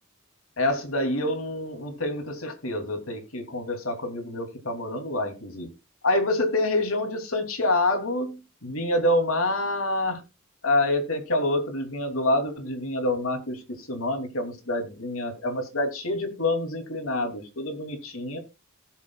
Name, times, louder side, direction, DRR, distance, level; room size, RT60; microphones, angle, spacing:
voice 1, 0.6-5.7 6.0-10.2 10.6-18.4, left 1 dB, 90° left, 2.8 m, -27 dB
19.0 x 7.3 x 2.3 m
head